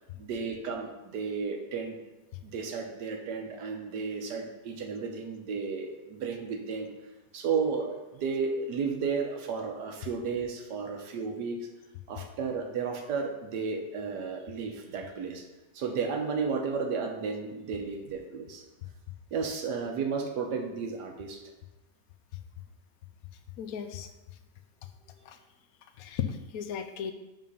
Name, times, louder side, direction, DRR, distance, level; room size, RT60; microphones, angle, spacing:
voice 1, 0.2-2.0 2.4-6.9 7.3-11.7 12.1-15.4 15.7-18.6 19.3-21.4 25.1-25.2, right 5 dB, 75° right, 4 dB, 1.5 m, -33 dB
voice 2, 23.6-24.1 25.2-25.4 26.0-27.1, left 8 dB, 65° left, 8 dB, 1.0 m, -35 dB
7.5 x 3.7 x 5.5 m, 1.1 s
omnidirectional pair, 1.8 m